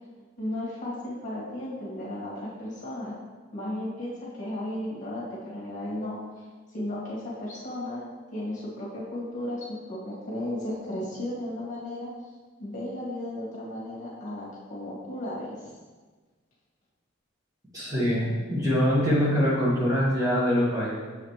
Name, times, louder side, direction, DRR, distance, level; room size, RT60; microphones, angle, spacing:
voice 1, 0.4-3.1 3.5-6.2 6.7-8.0 8.3-12.1 12.6-15.7, left 1 dB, 40° left, -6 dB, 1.8 m, -34 dB
voice 2, 17.7-20.9, equal, 20° right, -7 dB, 1.6 m, -24 dB
7.3 x 5.0 x 3.2 m, 1.4 s
head